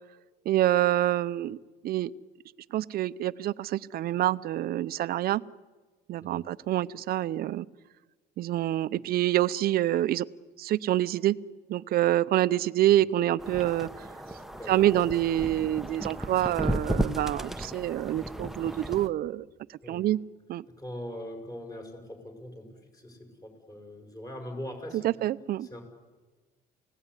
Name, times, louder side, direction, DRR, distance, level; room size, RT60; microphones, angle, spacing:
voice 1, 0.5-1.6 1.8-2.1 2.7-5.4 6.1-7.6 8.4-10.3 10.6-11.4 11.7-13.9 14.7-19.4 19.9-20.2 20.5-20.6 25.0-25.7, right 13 dB, 65° right, 17 dB, 0.7 m, -26 dB
sound 1, 13.4-19.1, right 1 dB, ahead, 1.1 m, -34 dB
voice 2, 14.5-15.1 19.8-20.1 20.8-25.1 25.6-25.8, left 1 dB, 20° left, 4 dB, 6.9 m, -42 dB
29.5 x 17.5 x 9.9 m, 1.3 s
cardioid pair, 110°, 17 cm